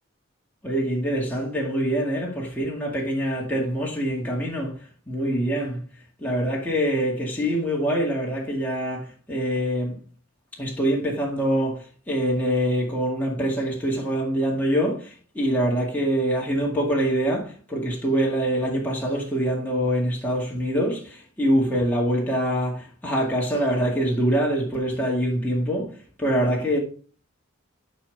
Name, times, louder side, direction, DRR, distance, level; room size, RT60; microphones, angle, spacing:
voice 1, 0.6-4.7 5.1-5.8 6.2-10.0 10.6-25.9 26.2-26.8, equal, 10° left, 2.0 m, -24 dB
11.5 x 5.5 x 3.5 m
head